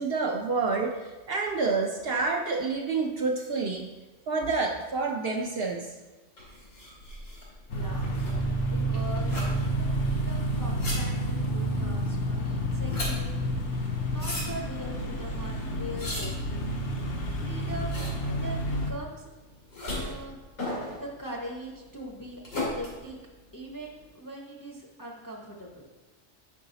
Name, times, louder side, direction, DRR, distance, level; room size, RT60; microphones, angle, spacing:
voice 1, 0.0-3.8 4.3-5.9, right 4 dB, 60° right, 0 dB, 0.7 m, -28 dB
sound 1, 6.4-24.0, left 1 dB, 90° left, 2.2 m, -38 dB
sound 2, 7.7-18.9, right 1 dB, 70° left, 1.1 m, -30 dB
voice 2, 7.7-8.2 8.7-16.6 17.3-19.3 19.8-20.4 21.0-23.2 23.5-25.9, equal, 20° left, -2 dB, 0.6 m, -41 dB
5.5 x 5.4 x 3.9 m, 1.2 s
omnidirectional pair, 1.3 m